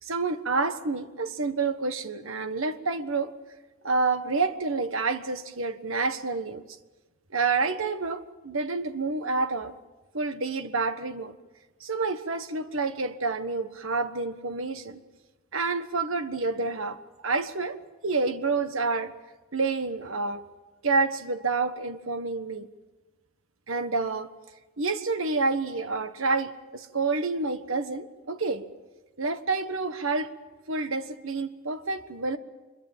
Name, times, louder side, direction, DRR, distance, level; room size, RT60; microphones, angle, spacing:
voice 1, 0.0-3.3 3.8-6.6 7.3-9.7 10.1-11.3 11.8-15.0 15.5-17.8 18.0-19.1 19.5-20.4 20.8-22.7 23.7-24.3 24.8-28.6 29.2-30.3 30.7-32.4, right 3 dB, 70° right, 9 dB, 1.4 m, -28 dB
24.5 x 22.5 x 7.5 m, 1.2 s
head